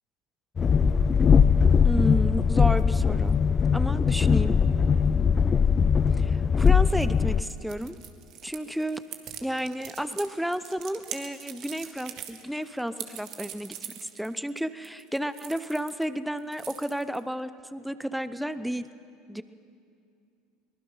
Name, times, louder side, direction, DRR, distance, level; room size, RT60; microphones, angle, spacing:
Train, 0.6-7.4, left 6 dB, 30° left, 0.6 m, -21 dB
voice 1, 1.8-3.4 3.7-4.6 6.2-8.0 8.4-9.0 9.4-13.7 14.0-18.9 19.3-19.4, equal, ahead, 13 dB, 0.8 m, -31 dB
sound 1, 6.6-16.0 16.3-17.3, right 10 dB, 55° right, 1.7 m, -42 dB
23.5 x 20.0 x 5.7 m, 2.4 s
hypercardioid pair, 75°, 0 cm